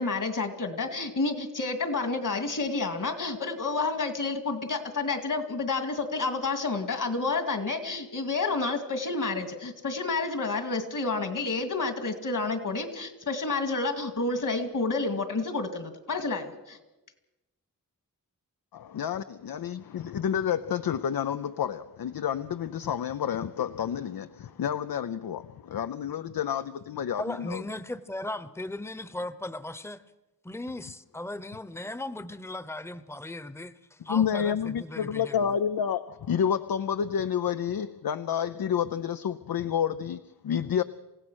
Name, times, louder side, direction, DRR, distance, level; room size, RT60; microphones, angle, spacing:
voice 1, 0.0-16.8, left 3 dB, 60° left, 2.3 m, -30 dB
voice 2, 18.7-27.6 34.1-40.8, left 8 dB, 80° left, 0.6 m, -29 dB
voice 3, 27.1-30.0 30.4-35.4, left 1 dB, 5° left, 0.9 m, -37 dB
27.5 x 16.0 x 6.3 m
wide cardioid pair, 80°, 35 cm